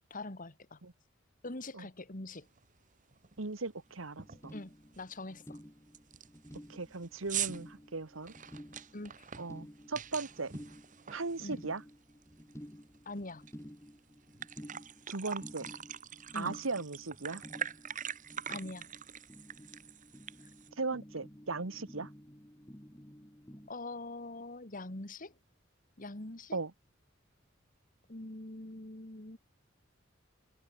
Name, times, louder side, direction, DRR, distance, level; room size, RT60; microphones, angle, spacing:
voice 1, 0.1-0.8 1.4-2.5 4.5-5.6 8.9-9.3 11.4-11.6 13.1-13.4 16.3-16.6 18.5-18.9 23.7-25.4 26.0-26.6 28.1-29.4, left 2 dB, 45° left, 2.3 m, -43 dB
sound 1, 2.6-2.7 3.1-3.4 3.7-3.8 4.2-4.5 4.9-5.0 5.5-5.6 5.9-11.9 12.2-13.5 13.9-14.0 14.2-20.7, right 9 dB, 40° right, 1.6 m, -43 dB
voice 2, 3.4-4.5 6.7-8.3 9.4-10.5 11.1-11.8 15.1-15.7 16.3-17.4 20.8-22.1 26.5-26.7, right 3 dB, 85° right, 1.5 m, -38 dB
sound 2, 3.9-4.0 4.1-23.7, equal, 15° left, 3.8 m, -52 dB
open air
head